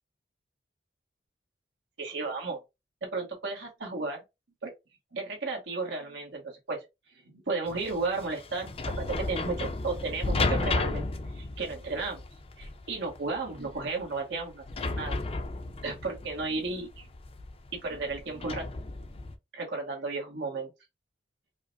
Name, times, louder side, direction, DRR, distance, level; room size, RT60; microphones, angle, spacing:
voice 1, 2.0-2.6 3.0-4.2 4.6-4.7 5.1-6.8 7.2-11.0 11.3-12.2 12.6-15.2 15.8-17.1 17.8-18.7 19.5-20.7, right 3 dB, 75° right, 1.1 m, -34 dB
sound 1, 7.7-19.3, left 3 dB, 30° left, 0.4 m, -34 dB
4.9 x 2.0 x 2.7 m
head